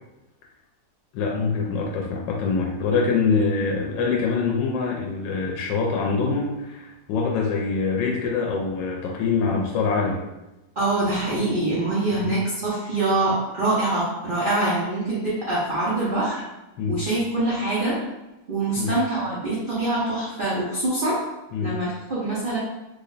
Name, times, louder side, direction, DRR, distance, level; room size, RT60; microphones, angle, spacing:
voice 1, 1.1-10.2 12.1-12.3 16.8-17.0 18.8-18.9 21.5-21.7, left 4 dB, 80° left, 0 dB, 1.2 m, -24 dB
voice 2, 10.8-16.4 16.9-18.0 18.5-21.2 21.6-22.6, right 2 dB, 75° right, -8 dB, 0.4 m, -24 dB
3.2 x 2.1 x 3.8 m, 1.0 s
omnidirectional pair, 2.0 m